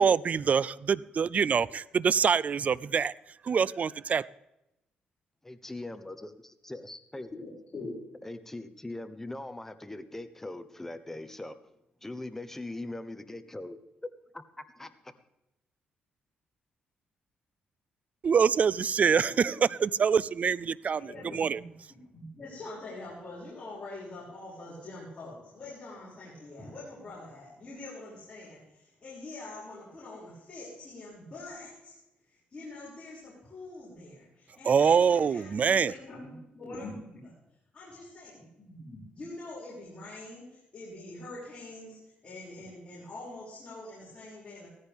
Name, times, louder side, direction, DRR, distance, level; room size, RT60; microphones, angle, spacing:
voice 1, 0.0-3.1 3.4-4.2 18.2-21.6 34.7-35.9, right 6 dB, 45° right, 21 dB, 0.4 m, -25 dB
voice 2, 5.4-7.3 8.2-11.6 12.0-13.8 14.3-15.1, left 2 dB, 10° left, 9 dB, 1.0 m, -41 dB
voice 3, 7.3-7.9 19.0-19.6 21.0-21.6 21.9-32.0 32.2-37.4 37.7-44.7, left 2 dB, 35° left, -8 dB, 6.4 m, -44 dB
16.5 x 14.5 x 3.6 m, 0.90 s
cardioid pair, 95°, 3 cm